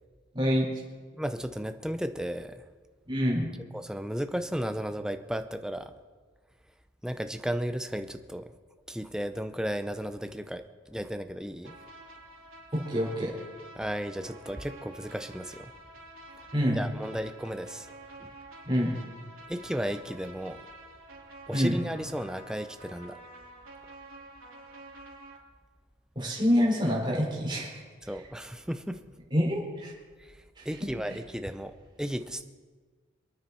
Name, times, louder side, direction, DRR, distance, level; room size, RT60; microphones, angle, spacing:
voice 1, 0.3-0.8 3.1-3.5 12.7-13.3 16.5-16.8 18.6-18.9 21.5-21.7 26.1-28.3 29.3-29.9 30.5-30.7 31.0-31.2, equal, 20° right, -3 dB, 4.6 m, -27 dB
voice 2, 1.2-2.7 3.8-5.9 7.0-8.5 8.9-11.8 13.8-15.7 16.8-17.9 18.2-18.3 19.5-20.7 21.5-23.2 28.1-29.0 30.2-32.4, equal, 5° right, 8 dB, 0.7 m, -34 dB
sound 1, 11.6-25.4, right 2 dB, 85° right, 3.4 m, -49 dB
27.5 x 9.5 x 4.3 m, 1.5 s
head